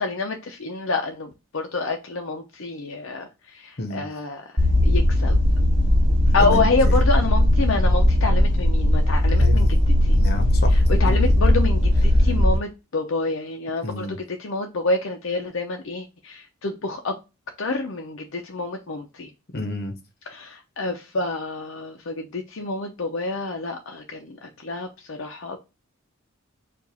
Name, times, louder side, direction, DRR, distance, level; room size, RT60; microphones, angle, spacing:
voice 1, 0.0-3.3 3.6-4.4 4.8-5.4 6.3-10.2 10.9-17.2 17.6-19.3 20.3-25.6, left 3 dB, 70° left, 0.6 m, -27 dB
sound 1, 4.6-12.6, left 1 dB, 50° right, 1.6 m, -18 dB
voice 2, 6.4-7.0 9.4-9.7 10.1-11.3 13.8-14.2 19.5-19.9, left 1 dB, 50° left, 1.0 m, -30 dB
4.7 x 2.5 x 4.0 m
head